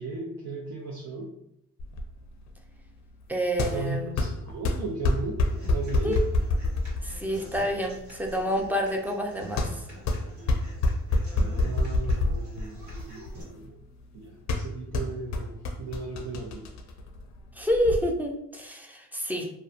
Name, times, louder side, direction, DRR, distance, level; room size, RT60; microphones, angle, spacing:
voice 1, 0.0-1.3 3.7-5.4 5.7-6.2 11.3-13.8 14.1-16.7, right 3 dB, 65° right, -2 dB, 0.6 m, -36 dB
sound 1, 1.8-18.0, left 2 dB, 65° left, 0.5 m, -29 dB
voice 2, 3.3-4.2 6.0-6.2 7.0-9.8 17.6-19.5, equal, 5° right, 1 dB, 0.4 m, -28 dB
Human voice / Acoustic guitar, 5.4-13.4, right 1 dB, 80° right, 1.2 m, -47 dB
2.7 x 2.2 x 2.4 m, 0.78 s
cardioid pair, 90°, 30 cm